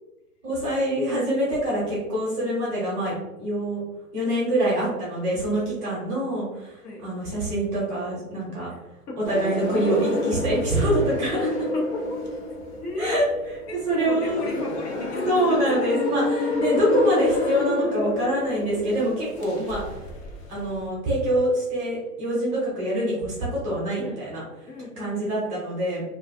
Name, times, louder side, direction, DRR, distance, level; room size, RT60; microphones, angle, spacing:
voice 1, 0.4-3.8 4.1-8.7 9.3-11.7 13.0-13.2 13.9-14.4 15.3-20.0 20.5-24.4 25.0-26.0, right 1 dB, 15° right, -6 dB, 0.6 m, -25 dB
sound 1, 9.2-20.9, left 2 dB, 45° left, 0.6 m, -29 dB
voice 2, 11.7-12.2 12.5-16.1 24.0-24.2 24.7-25.4, left 1 dB, 85° left, -1 dB, 1.0 m, -34 dB
2.4 x 2.4 x 2.5 m, 0.99 s
hypercardioid pair, 135°, 45 cm